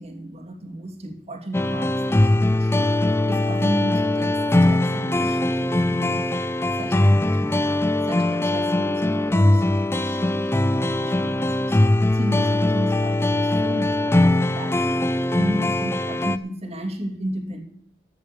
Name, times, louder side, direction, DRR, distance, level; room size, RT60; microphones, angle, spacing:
voice 1, 0.0-6.4 6.8-7.7 8.0-17.6, equal, 35° right, 3 dB, 2.6 m, -33 dB
sound 1, 1.5-16.4, left 1 dB, 15° left, 0.5 m, -21 dB
14.0 x 6.7 x 8.3 m, 0.64 s
head